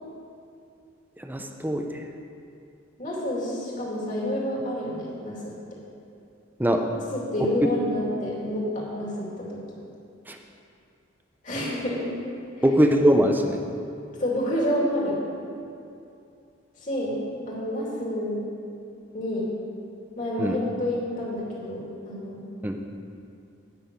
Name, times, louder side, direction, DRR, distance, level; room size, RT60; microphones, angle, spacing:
voice 1, 1.2-1.9 6.6-6.8 10.3-10.4 12.6-13.6 20.4-20.6 22.6-22.8, equal, 10° right, 3 dB, 0.6 m, -21 dB
voice 2, 3.0-5.5 7.1-9.6 11.4-12.0 12.6-12.7 14.2-15.2 16.8-17.2 17.5-18.5 19.1-19.5 20.2-22.4, left 1 dB, 40° left, -5 dB, 2.6 m, -29 dB
9.5 x 6.2 x 8.3 m, 2.6 s
head